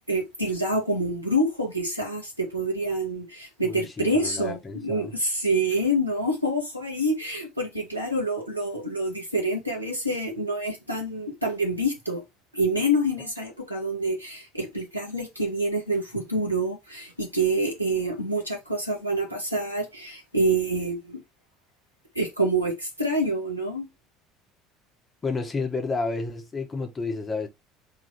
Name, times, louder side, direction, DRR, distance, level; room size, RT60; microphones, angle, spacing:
voice 1, 0.1-12.2 12.5-21.2 22.1-23.9, right 1 dB, 90° right, 1.4 m, -27 dB
voice 2, 3.6-5.1 25.2-27.5, left 3 dB, 25° left, 1.4 m, -31 dB
3.8 x 3.1 x 4.1 m
figure-of-eight pair, 60°, 0 cm